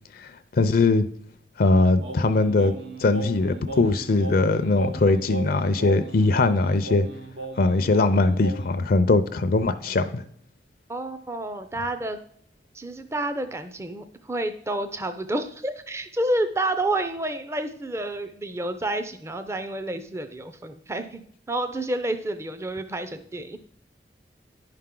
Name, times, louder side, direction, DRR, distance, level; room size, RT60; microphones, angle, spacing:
voice 1, 0.1-1.1 1.6-2.7 3.0-7.1 7.6-10.2, left 3 dB, 55° left, 11 dB, 0.5 m, -21 dB
Singing, 2.0-8.8, right 2 dB, 80° right, 0.9 m, -37 dB
voice 2, 10.9-12.2 12.7-23.6, right 1 dB, 15° right, 10 dB, 0.5 m, -29 dB
10.0 x 5.7 x 3.7 m, 0.63 s
head